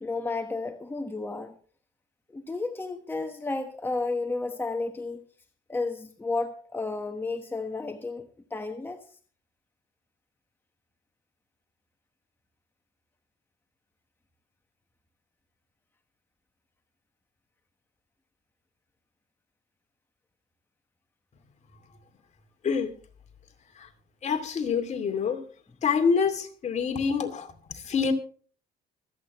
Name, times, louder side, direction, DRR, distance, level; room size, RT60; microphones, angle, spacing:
voice 1, 0.0-1.5 2.3-5.2 5.7-9.1, left 3 dB, 15° left, 1.2 m, -32 dB
voice 2, 24.2-25.4 25.8-28.1, left 6 dB, 45° left, 2.6 m, -26 dB
25.0 x 8.9 x 3.1 m
cardioid pair, 110°, 17 cm